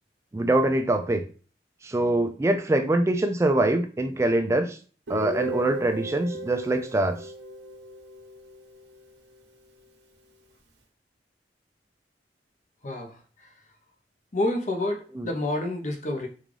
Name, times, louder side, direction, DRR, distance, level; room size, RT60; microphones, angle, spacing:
voice 1, 0.3-1.2 1.8-4.8 5.1-7.3 15.2-15.3, right 1 dB, 15° right, 6 dB, 0.3 m, -24 dB
Guitar, 5.1-8.9, right 2 dB, 80° right, 0.9 m, -36 dB
voice 2, 12.8-13.2 14.3-16.3, left 1 dB, 45° left, 3 dB, 0.6 m, -28 dB
3.7 x 2.3 x 3.2 m, 0.39 s
head